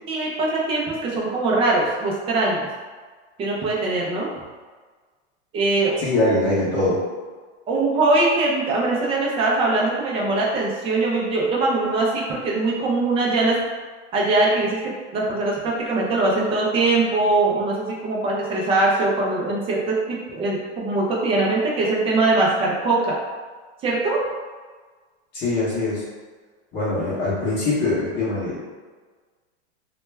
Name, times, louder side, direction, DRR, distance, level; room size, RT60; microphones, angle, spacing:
voice 1, 0.1-2.7 3.4-4.3 5.5-6.0 7.7-13.6 14.1-23.2 23.8-24.2, right 2 dB, 15° right, -4 dB, 0.4 m, -22 dB
voice 2, 6.0-7.0 25.3-26.0 26.7-28.6, left 2 dB, 30° left, -8 dB, 0.8 m, -22 dB
2.2 x 2.0 x 3.2 m, 1.4 s
supercardioid pair, 135°, 35 cm